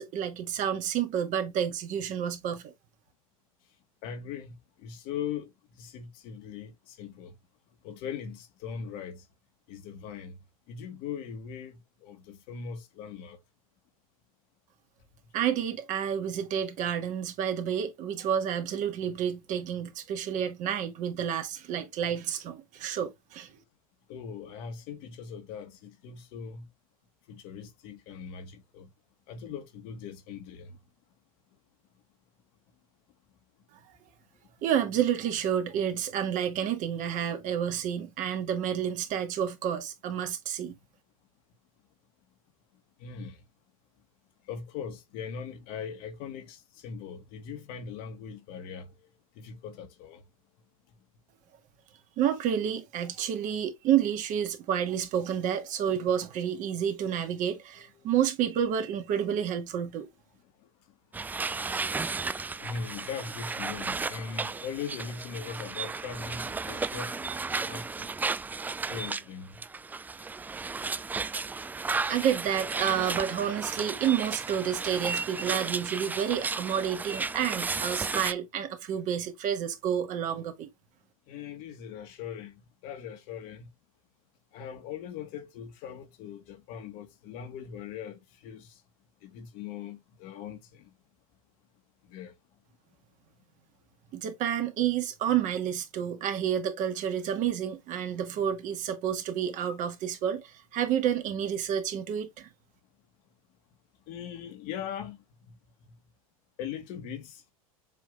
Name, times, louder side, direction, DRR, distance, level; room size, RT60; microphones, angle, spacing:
voice 1, 0.0-2.7 15.3-23.5 34.6-40.8 52.2-60.1 71.9-80.7 94.1-102.5, right 9 dB, 45° right, 1.9 m, -30 dB
voice 2, 4.0-7.3 7.8-9.3 9.7-10.4 10.7-13.4 24.1-26.7 27.3-28.9 29.3-30.8 43.0-43.4 44.4-49.1 49.4-50.2 60.6-60.7 62.6-67.2 67.6-68.1 68.9-69.6 81.3-83.7 84.5-88.8 89.2-91.0 92.0-92.4 104.1-105.9 106.6-107.4, left 7 dB, 50° left, 2.0 m, -40 dB
sound 1, 61.1-69.2 69.6-78.3, right 4 dB, 10° right, 0.4 m, -34 dB
7.6 x 3.6 x 3.5 m
hypercardioid pair, 100°, 18 cm